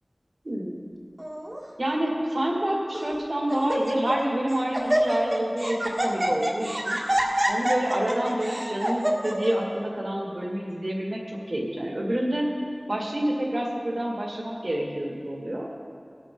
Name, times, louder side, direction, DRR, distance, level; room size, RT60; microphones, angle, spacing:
voice 1, 0.4-0.8 1.8-7.0 7.5-12.5 12.9-15.7, right 1 dB, 65° right, -2 dB, 2.0 m, -28 dB
Laughter, 1.2-1.6 2.4-2.5 2.9-3.2 3.5-4.3 4.5-9.5, right 1 dB, 35° right, 1.7 m, -26 dB
18.5 x 9.0 x 3.8 m, 2.2 s
wide cardioid pair, 45°, 0 cm